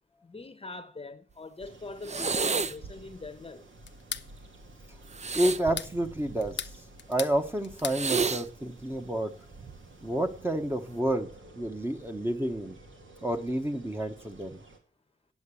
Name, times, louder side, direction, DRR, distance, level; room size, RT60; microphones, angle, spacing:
voice 1, 0.2-3.6, left 3 dB, 30° left, 0.9 m, -42 dB
sound 1, 1.6-14.8, right 1 dB, 75° right, 2.4 m, -52 dB
Clean snorting sounds, 2.0-2.9 5.1-6.6 7.8-8.4 9.5-9.8, right 5 dB, 35° right, 0.5 m, -31 dB
sound 2, 3.9-4.3 5.5-5.9 6.4-7.4 7.6-8.0, left 7 dB, 65° left, 0.6 m, -36 dB
voice 2, 5.3-6.7 7.1-9.3 10.0-11.3 11.5-12.8 13.2-14.6, right 1 dB, 10° right, 1.0 m, -29 dB
9.4 x 7.8 x 8.3 m
wide cardioid pair, 150°, 20 cm